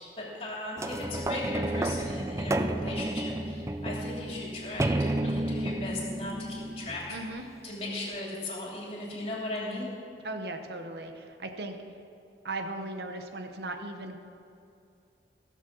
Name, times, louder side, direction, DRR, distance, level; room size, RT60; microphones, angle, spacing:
voice 1, 0.2-7.2 7.6-9.9, left 2 dB, 35° left, -4 dB, 3.0 m, -37 dB
sound 1, 0.8-7.5 8.2-8.3, right 1 dB, 15° right, 0.4 m, -31 dB
voice 2, 7.1-7.5 10.2-11.8 12.4-14.2, right 2 dB, 70° right, 5 dB, 0.9 m, -37 dB
16.0 x 7.3 x 6.0 m, 2.5 s
head